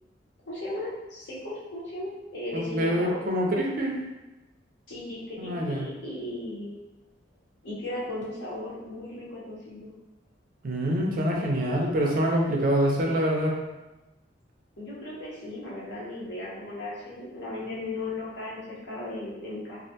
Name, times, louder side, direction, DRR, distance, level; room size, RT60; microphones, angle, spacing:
voice 1, 0.4-3.2 4.9-6.7 7.6-9.9 14.8-19.8, left 2 dB, 70° left, -7 dB, 0.8 m, -36 dB
voice 2, 2.5-4.0 5.4-5.9 10.6-13.5, equal, 45° right, -1 dB, 0.4 m, -25 dB
2.3 x 2.1 x 2.7 m, 1.1 s
head